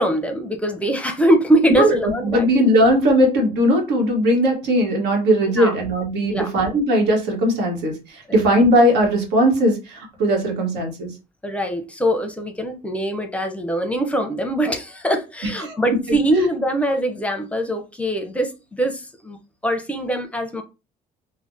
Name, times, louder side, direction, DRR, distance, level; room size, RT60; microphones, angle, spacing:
voice 1, 0.0-2.5 5.6-5.7 6.2-6.5 11.4-19.4 19.6-20.6, right 1 dB, 5° left, 0.6 m, -22 dB
voice 2, 2.2-11.1 15.6-15.8, equal, 85° right, 1.2 m, -18 dB
3.2 x 2.1 x 2.6 m
cardioid pair, 110°, 17 cm